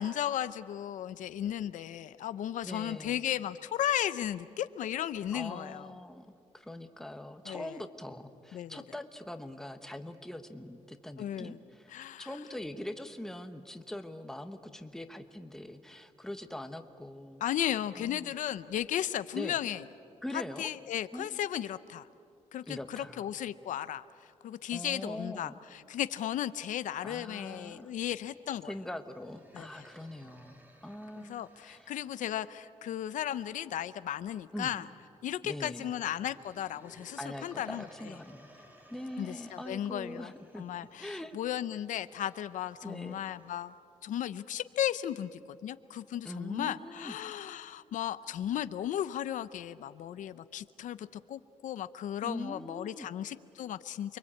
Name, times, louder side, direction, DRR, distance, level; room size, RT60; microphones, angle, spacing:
voice 1, 0.0-5.9 7.5-7.8 8.5-8.8 11.2-11.6 11.9-12.3 17.4-19.8 20.3-22.1 22.5-24.0 24.4-28.7 29.5-29.8 31.2-34.9 35.2-37.8 39.2-43.7 44.0-54.2, left 11 dB, 85° left, 14 dB, 0.7 m, -35 dB
voice 2, 2.6-3.2 5.3-6.3 6.5-17.4 18.0-18.3 19.3-19.6 20.2-20.7 21.1-21.3 22.7-23.2 24.7-25.6 27.0-27.9 28.6-31.9 34.5-34.7 35.4-35.9 37.2-38.5 38.9-40.6 41.0-41.4 42.8-43.2 46.2-47.1 52.2-53.1, left 1 dB, 5° left, 7 dB, 1.2 m, -42 dB
sound 1, 27.4-32.6 36.2-43.7, equal, 15° right, 2.6 m, -60 dB
29.0 x 23.0 x 8.6 m, 2.6 s
wide cardioid pair, 150°, 13 cm